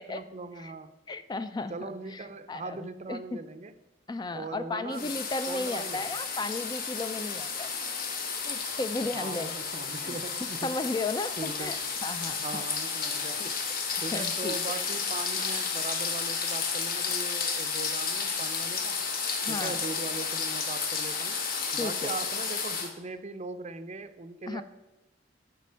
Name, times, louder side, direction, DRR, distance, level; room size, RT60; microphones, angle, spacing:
voice 1, 0.0-0.9 1.7-3.7 4.3-5.2 5.5-6.1 9.1-10.7 11.4-11.7 12.4-13.4 14.0-19.0 19.5-21.4 21.7-24.6, right 3 dB, 40° right, 11 dB, 0.5 m, -39 dB
voice 2, 1.1-3.2 4.1-7.7 8.4-9.6 10.0-10.2 10.6-12.6 13.4-13.5 14.1-14.5 19.4-19.8 21.8-22.1 24.5-24.6, left 3 dB, 25° left, 12 dB, 0.4 m, -35 dB
sound 1, 4.9-22.9, left 5 dB, 55° left, 1.1 m, -32 dB
9.4 x 5.1 x 5.6 m, 1.0 s
head